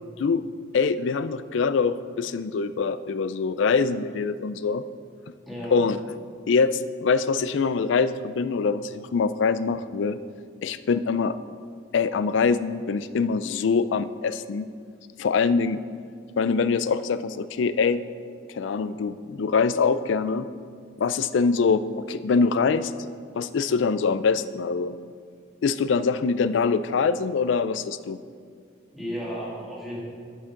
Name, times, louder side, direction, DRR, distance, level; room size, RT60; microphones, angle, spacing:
voice 1, 0.7-4.8 5.7-6.0 6.5-10.2 10.6-11.4 11.9-14.7 15.2-15.8 16.4-18.0 18.5-20.5 21.0-22.9 23.4-25.0 25.6-28.2, left 5 dB, 70° left, 14 dB, 0.4 m, -24 dB
voice 2, 5.5-5.9 28.9-30.0, equal, ahead, -8 dB, 2.6 m, -33 dB
10.5 x 8.2 x 3.8 m, 2.2 s
head